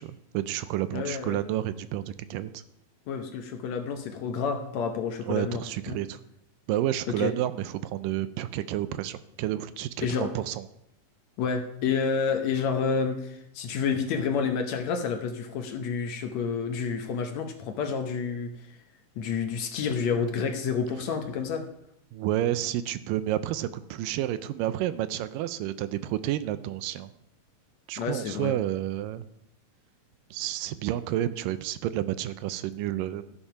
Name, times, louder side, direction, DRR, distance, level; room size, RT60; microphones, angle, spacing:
voice 1, 0.0-2.6 5.3-6.2 6.7-10.6 22.1-27.1 27.9-29.3 30.3-33.3, right 13 dB, 80° right, 13 dB, 2.2 m, -30 dB
voice 2, 0.9-1.4 3.1-5.6 5.9-6.0 7.1-7.3 10.0-10.3 11.4-18.5 19.2-21.6 28.0-28.5, left 6 dB, 70° left, 5 dB, 1.8 m, -29 dB
13.5 x 7.1 x 5.7 m, 0.78 s
omnidirectional pair, 4.0 m